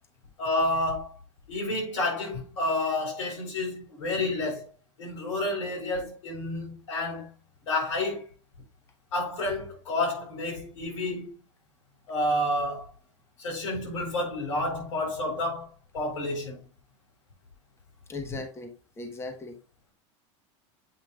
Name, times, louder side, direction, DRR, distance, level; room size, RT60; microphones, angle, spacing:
voice 1, 0.4-1.1 1.5-4.7 5.0-7.3 7.7-8.3 9.1-11.3 12.1-12.9 13.4-16.6, left 2 dB, 85° left, 4.3 m, -30 dB
voice 2, 18.1-19.6, left 3 dB, 15° left, 1.2 m, -38 dB
8.3 x 5.6 x 2.4 m
hypercardioid pair, 105°, 16 cm